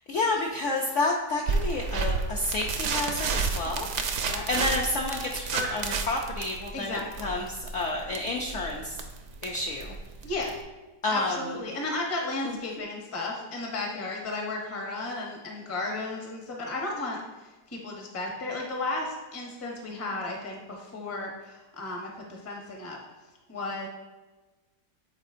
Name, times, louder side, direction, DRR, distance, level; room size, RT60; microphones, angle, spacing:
voice 1, 0.1-7.5 7.7-8.9 9.4-9.9 11.0-11.5 12.4-12.6, left 2 dB, 70° left, -1 dB, 0.7 m, -30 dB
sound 1, 1.5-10.6, right 4 dB, 75° right, 0.6 m, -31 dB
voice 2, 3.6-4.4 6.7-7.3 10.2-10.6 11.1-23.0 23.5-23.9, left 2 dB, 20° left, -1 dB, 0.4 m, -34 dB
8.8 x 4.2 x 2.5 m, 1.2 s
omnidirectional pair, 1.9 m